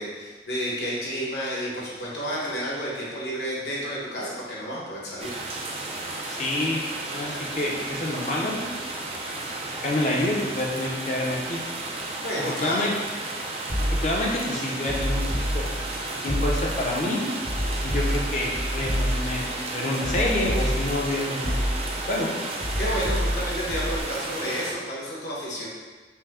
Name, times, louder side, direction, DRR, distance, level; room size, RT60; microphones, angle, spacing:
voice 1, 0.0-5.3 12.2-12.9 22.8-25.7, equal, 80° left, -6 dB, 1.2 m, -31 dB
sound 1, 5.2-24.7, right 2 dB, 35° right, 0.4 m, -33 dB
voice 2, 6.3-6.8 7.1-8.6 9.3-11.6 12.5-12.9 13.8-15.7 16.2-17.2 17.8-21.8 22.1-22.3, left 1 dB, 40° left, -3 dB, 0.7 m, -28 dB
sound 2, 13.7-14.3 14.9-15.9 16.3-16.9 17.4-19.5 20.0-21.1 21.4-22.1 22.6-24.0, equal, 70° right, 1.4 m, -28 dB
5.7 x 2.2 x 3.6 m, 1.4 s
head